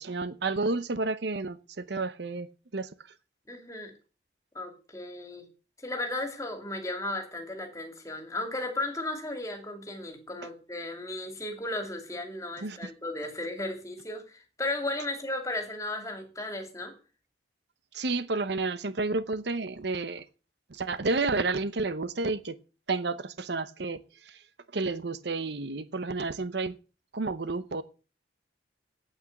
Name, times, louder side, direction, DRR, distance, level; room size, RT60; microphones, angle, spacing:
voice 1, 0.0-2.5 2.7-2.9 12.6-12.9 17.9-20.2 20.7-22.6 22.9-24.4 24.7-26.7 27.1-27.8, right 3 dB, 65° right, 14 dB, 0.8 m, -31 dB
voice 2, 3.5-3.9 4.5-5.5 5.8-16.9, left 2 dB, 15° left, 4 dB, 2.6 m, -35 dB
9.0 x 8.6 x 7.8 m, 0.35 s
head